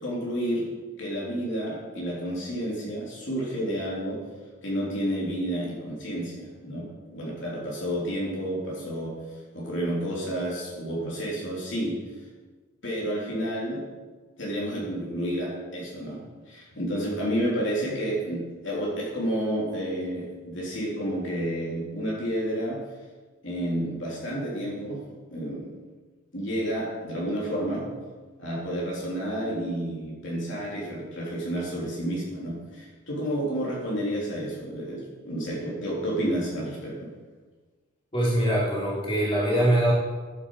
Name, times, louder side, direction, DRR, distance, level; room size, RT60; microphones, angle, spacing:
voice 1, 0.0-4.2 4.6-9.2 9.5-12.0 12.8-13.9 14.4-22.8 23.4-25.0 25.3-25.7 26.3-27.9 28.4-37.1, equal, 60° left, -4 dB, 3.4 m, -30 dB
voice 2, 38.1-39.9, right 1 dB, 25° left, -6 dB, 3.4 m, -23 dB
11.5 x 9.7 x 4.8 m, 1.4 s
head